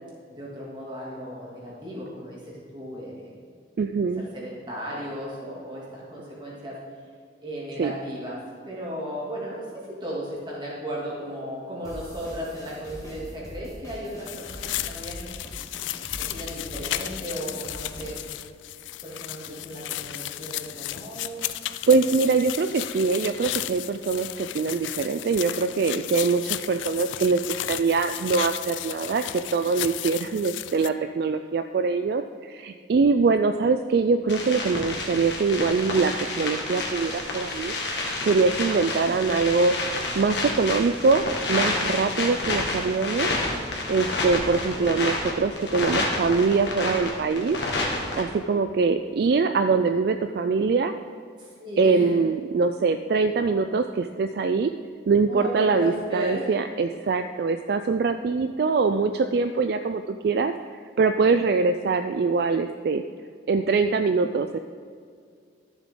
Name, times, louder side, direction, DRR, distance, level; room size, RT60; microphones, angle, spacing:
voice 1, 0.3-3.4 4.2-6.8 7.4-8.4 8.6-15.3 16.2-18.2 19.0-21.4 51.4-52.2 55.3-56.5, equal, 25° right, -5 dB, 2.6 m, -35 dB
voice 2, 3.8-4.2 7.8-7.9 21.9-29.2 29.5-39.7 40.2-43.3 43.9-47.6 48.1-50.9 51.8-54.7 55.1-60.5 61.0-63.0 63.5-64.6, right 4 dB, 55° right, 8 dB, 0.3 m, -23 dB
sound 1, 11.8-18.2, equal, 20° left, 1.5 m, -42 dB
sound 2, 14.3-30.9, left 14 dB, 80° left, 0.3 m, -34 dB
sound 3, 34.3-48.2, left 2 dB, 65° left, 1.8 m, -29 dB
13.0 x 7.2 x 3.8 m, 2.2 s
head